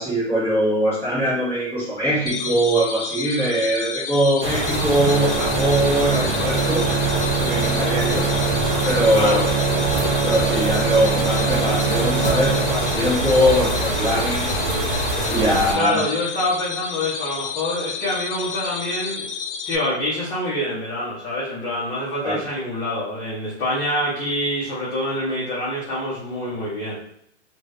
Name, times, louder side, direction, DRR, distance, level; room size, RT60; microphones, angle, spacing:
voice 1, 0.0-6.9 7.4-8.3 8.8-9.5 10.2-14.5 15.3-16.0 22.2-22.4, equal, 5° left, -11 dB, 1.3 m, -22 dB
sound 1, 2.3-19.8, left 6 dB, 80° left, 0.7 m, -31 dB
sound 2, 4.4-15.7, right 1 dB, 20° right, 0.7 m, -24 dB
Bowed string instrument, 5.0-13.3, right 7 dB, 70° right, 1.0 m, -25 dB
voice 2, 9.1-9.4 15.7-19.3 19.6-27.0, left 1 dB, 25° left, -10 dB, 1.2 m, -26 dB
3.0 x 2.6 x 3.2 m, 0.72 s
hypercardioid pair, 150°, 35 cm